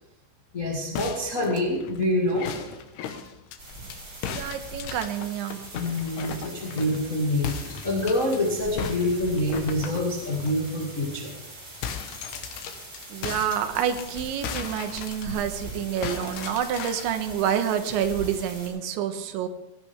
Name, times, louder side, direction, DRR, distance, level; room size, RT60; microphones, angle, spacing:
voice 1, 0.5-2.5 3.1-3.2 5.7-11.3, left 1 dB, 35° left, -3 dB, 1.2 m, -26 dB
sound 1, 1.0-4.0 4.2-7.1 7.4-8.4 8.8-10.5 11.0-11.1 11.4-15.7 16.0-17.2, left 7 dB, 70° left, 3.1 m, -37 dB
sound 2, 3.6-18.7, right 1 dB, 25° right, 6.5 m, -42 dB
voice 2, 4.3-5.6 13.1-19.5, right 9 dB, 85° right, 8 dB, 3.4 m, -28 dB
18.5 x 16.5 x 3.5 m, 0.90 s
omnidirectional pair, 5.3 m